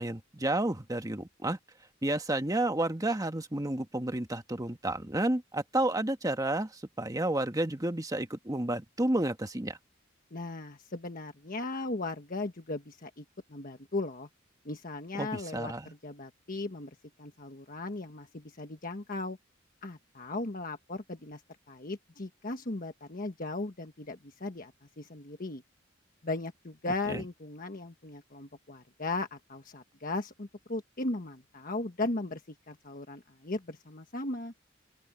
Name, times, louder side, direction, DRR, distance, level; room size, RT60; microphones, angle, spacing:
voice 1, 0.0-1.6 2.0-6.7 7.0-9.8 15.2-15.9 27.1-27.2, right 1 dB, 20° right, 1.3 m, -31 dB
voice 2, 10.3-14.3 14.6-16.9 17.2-19.4 19.8-21.4 21.7-25.6 26.2-34.5, left 2 dB, 45° left, 1.4 m, -37 dB
open air
head